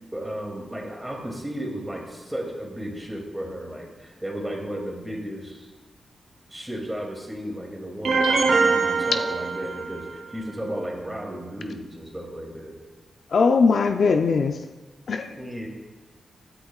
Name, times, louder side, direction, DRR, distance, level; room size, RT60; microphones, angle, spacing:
voice 1, 0.1-5.7 6.5-12.8 15.3-15.7, equal, 10° right, 0 dB, 2.5 m, -34 dB
sound 1, 8.0-10.1, right 4 dB, 65° right, 1.0 m, -23 dB
voice 2, 13.3-14.6 15.1-15.3, left 4 dB, 65° left, 6 dB, 0.5 m, -20 dB
20.0 x 10.0 x 2.4 m, 1.2 s
wide cardioid pair, 110°, 0 cm